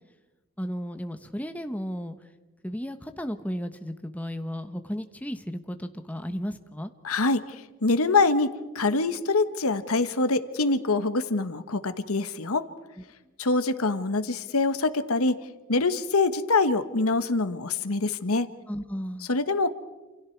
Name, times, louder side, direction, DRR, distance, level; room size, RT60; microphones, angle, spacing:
voice 1, 0.6-2.2 2.6-6.9 18.7-19.3, equal, 5° left, 8 dB, 1.1 m, -34 dB
voice 2, 7.0-12.6 13.4-15.4 15.7-18.5 19.3-19.7, left 3 dB, 90° left, 11 dB, 1.3 m, -25 dB
29.0 x 28.0 x 4.6 m, 1.2 s
head